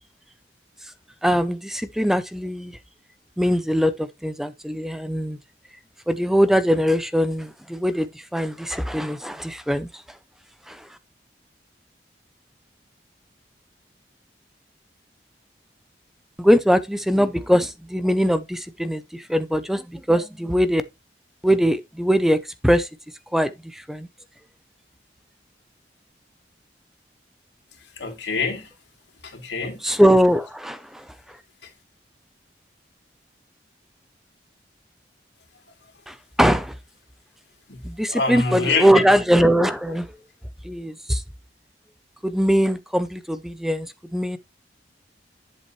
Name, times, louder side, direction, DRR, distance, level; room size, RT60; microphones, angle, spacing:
voice 1, 1.2-2.8 3.4-5.4 6.1-10.2 10.7-11.0 16.4-20.8 21.4-22.9 23.3-24.1 29.8-31.4 36.1-36.8 37.8-40.1 40.6-41.2 42.2-44.4, equal, ahead, 0.5 m, -21 dB
voice 2, 28.0-28.7 29.2-29.8 37.7-37.8 38.1-39.0, left 4 dB, 80° left, 2.8 m, -26 dB
11.0 x 7.4 x 3.1 m
head